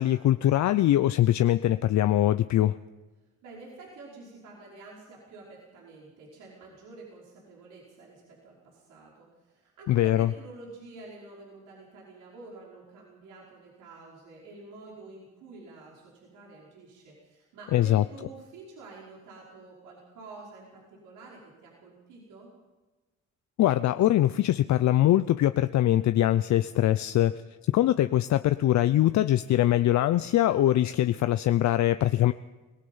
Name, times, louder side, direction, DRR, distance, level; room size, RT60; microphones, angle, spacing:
voice 1, 0.0-2.8 9.9-10.3 17.7-18.0 23.6-27.3 27.7-32.3, left 13 dB, 65° left, 11 dB, 0.6 m, -22 dB
voice 2, 3.4-22.5, right 3 dB, 90° right, -4 dB, 5.4 m, -48 dB
25.0 x 18.5 x 5.6 m, 1.2 s
cardioid pair, 90°, 30 cm